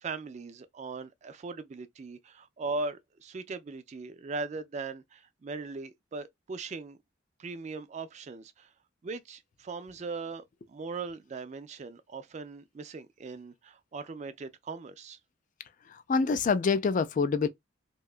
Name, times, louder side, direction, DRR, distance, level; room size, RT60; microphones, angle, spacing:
voice 1, 0.0-7.0 7.4-8.7 9.0-10.4 10.7-15.2, right 3 dB, 35° right, 0.3 m, -39 dB
voice 2, 15.8-17.5, left 5 dB, 40° left, 0.3 m, -26 dB
2.7 x 2.3 x 2.3 m
head